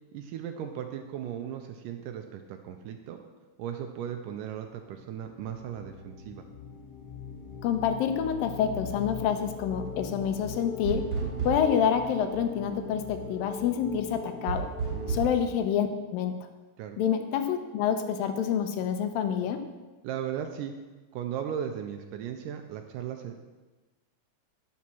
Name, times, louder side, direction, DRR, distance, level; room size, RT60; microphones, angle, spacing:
voice 1, 0.1-3.2 3.6-6.4 11.2-11.5 14.9-15.2 16.8-17.0 20.0-20.7 21.1-23.4, right 9 dB, 80° right, 6 dB, 2.0 m, -37 dB
sound 1, 4.6-15.2, left 5 dB, 40° left, 1.5 m, -41 dB
voice 2, 7.6-11.2 11.4-14.7 15.1-16.5 17.0-19.6, left 8 dB, 80° left, 7 dB, 2.4 m, -27 dB
sound 2, 10.8-11.8 14.5-15.4, right 5 dB, 30° right, 1.9 m, -31 dB
9.6 x 7.2 x 6.1 m, 1.2 s
omnidirectional pair, 4.1 m